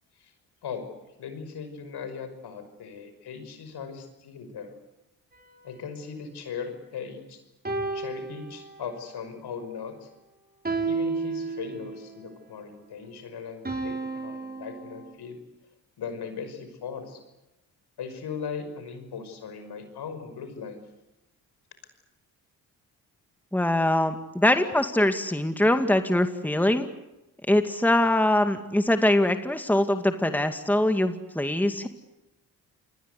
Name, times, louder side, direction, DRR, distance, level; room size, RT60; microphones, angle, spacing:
voice 1, 1.2-4.7 5.6-7.4 7.9-10.1 10.8-15.4 16.0-17.2 18.0-20.8, left 6 dB, 65° left, 9 dB, 5.7 m, -38 dB
sound 1, 5.3-7.1 7.6-9.1 10.6-12.1 13.6-15.1, right 4 dB, 20° right, 6.3 m, -33 dB
voice 2, 23.5-26.9 27.5-31.9, left 1 dB, 5° left, 7 dB, 2.1 m, -23 dB
28.5 x 21.0 x 8.3 m, 0.97 s
supercardioid pair, 55°, 42 cm